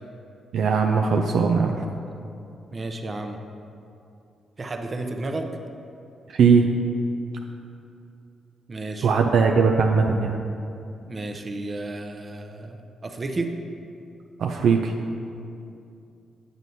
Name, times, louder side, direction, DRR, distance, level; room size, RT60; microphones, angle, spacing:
voice 1, 0.5-1.8 6.3-6.6 9.0-10.4 14.4-14.9, right 5 dB, 70° right, 2 dB, 0.3 m, -19 dB
voice 2, 2.7-3.4 4.6-5.5 8.7-9.1 11.0-13.5, right 2 dB, 40° right, 4 dB, 0.7 m, -32 dB
7.9 x 7.5 x 2.7 m, 2.7 s
hypercardioid pair, 45°, 0 cm